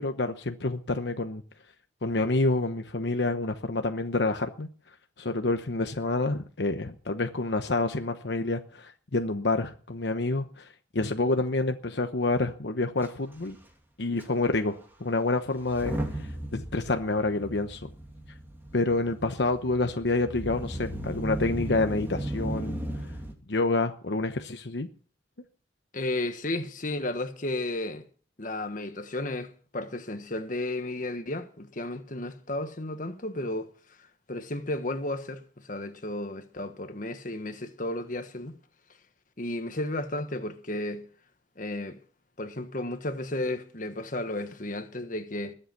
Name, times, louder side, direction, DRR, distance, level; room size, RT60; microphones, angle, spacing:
voice 1, 0.0-1.4 2.0-4.7 5.2-13.6 14.0-17.9 18.7-23.1 23.5-24.9, left 2 dB, 70° left, 1.0 m, -28 dB
Motor vehicle (road) / Engine starting / Accelerating revving vroom, 13.0-13.1 13.3-13.6 14.2-14.3 15.6-23.3, right 1 dB, 10° right, 2.8 m, -36 dB
voice 2, 25.9-28.1 28.4-33.7 34.3-38.6 39.4-41.0 41.6-42.0 42.4-45.5, left 1 dB, 45° left, 1.4 m, -33 dB
21.0 x 8.0 x 5.9 m
head